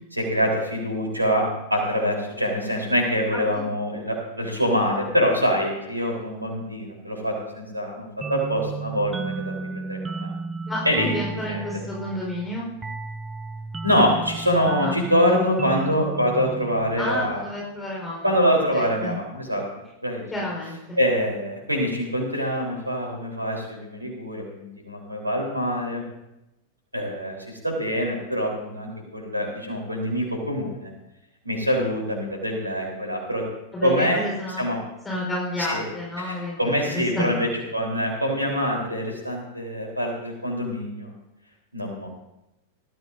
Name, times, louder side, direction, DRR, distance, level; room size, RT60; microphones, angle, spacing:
voice 1, 0.2-10.3 10.9-11.1 11.5-11.8 13.8-17.5 18.2-19.6 20.0-20.2 21.0-26.0 26.9-30.9 31.4-33.5 33.8-34.2 34.6-34.8 35.6-35.8 36.2-41.1 41.7-42.1, equal, 85° right, 0 dB, 3.8 m, -25 dB
sound 1, 8.2-17.6, right 4 dB, 15° right, 0.7 m, -34 dB
voice 2, 10.7-12.7 14.8-15.4 17.0-18.3 18.7-19.2 20.3-21.0 33.7-34.6 35.0-37.4, left 1 dB, 10° left, -4 dB, 4.3 m, -30 dB
19.5 x 14.0 x 2.7 m, 0.90 s
figure-of-eight pair, 95°, 0 cm